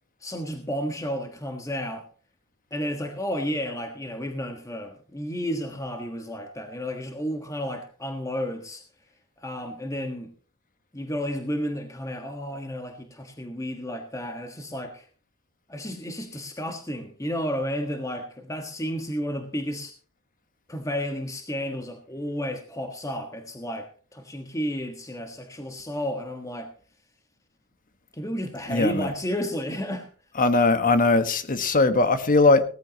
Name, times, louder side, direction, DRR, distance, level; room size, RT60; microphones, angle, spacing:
voice 1, 0.2-2.1 2.7-8.8 9.4-10.3 10.9-15.1 15.7-19.9 20.7-26.7 28.1-30.1, equal, 15° left, 5 dB, 1.4 m, -32 dB
voice 2, 28.7-29.1 30.4-32.6, left 3 dB, 40° left, 9 dB, 1.4 m, -20 dB
18.0 x 14.0 x 2.9 m, 0.39 s
head